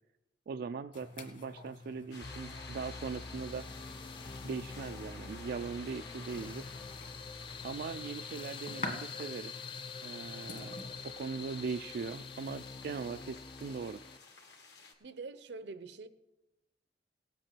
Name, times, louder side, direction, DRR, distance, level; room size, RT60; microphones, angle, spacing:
voice 1, 0.5-3.6 4.4-6.6 7.6-9.5 10.0-10.8 11.0-14.0, right 5 dB, 60° right, 0.3 m, -40 dB
sound 1, 0.9-11.0, left 2 dB, 50° left, 1.8 m, -48 dB
sound 2, 2.1-14.9, left 4 dB, 70° left, 1.8 m, -53 dB
sound 3, 2.2-14.2, left 5 dB, 30° left, 0.3 m, -46 dB
voice 2, 15.0-16.1, right 4 dB, 80° right, 0.7 m, -45 dB
18.5 x 7.7 x 4.5 m
head